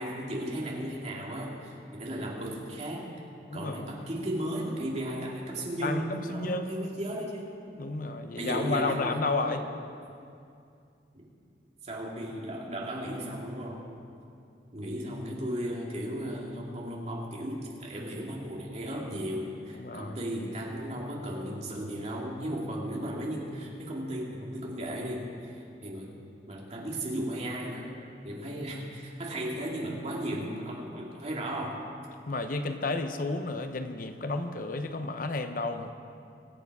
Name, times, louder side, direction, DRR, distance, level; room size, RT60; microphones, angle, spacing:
voice 1, 0.0-3.1 3.5-7.5 8.4-9.0 9.4-9.6 11.8-13.9 14.7-26.2 26.5-28.0 28.2-31.9, right 1 dB, 40° right, -2 dB, 2.4 m, -35 dB
voice 2, 3.5-4.0 5.8-6.9 7.8-9.7 19.7-20.2 32.3-35.9, left 3 dB, 50° left, 8 dB, 0.7 m, -32 dB
23.5 x 8.2 x 4.8 m, 2.5 s
head